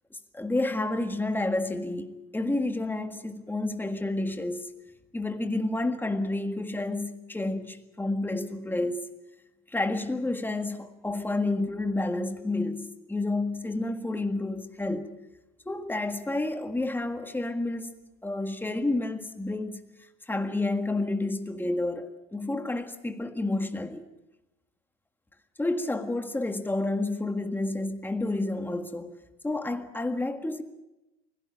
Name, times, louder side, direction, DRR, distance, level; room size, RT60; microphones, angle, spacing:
voice 1, 0.3-4.7 5.1-9.1 9.7-15.1 15.6-17.9 18.2-19.8 20.3-24.0 25.6-29.2 29.4-30.6, left 2 dB, 5° left, 1.7 m, -30 dB
24.0 x 17.0 x 9.1 m
supercardioid pair, 120°, 36 cm